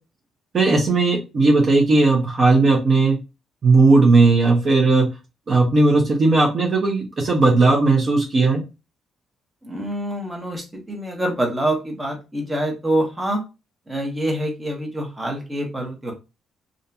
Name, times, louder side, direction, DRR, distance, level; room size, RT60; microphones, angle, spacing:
voice 1, 0.5-3.2 3.6-5.1 5.5-8.6, right 3 dB, 45° right, -1 dB, 0.7 m, -16 dB
voice 2, 9.6-13.4 13.9-16.1, right 1 dB, 15° right, 1 dB, 0.9 m, -26 dB
2.7 x 2.5 x 2.2 m, 0.28 s
cardioid pair, 90°, 0 cm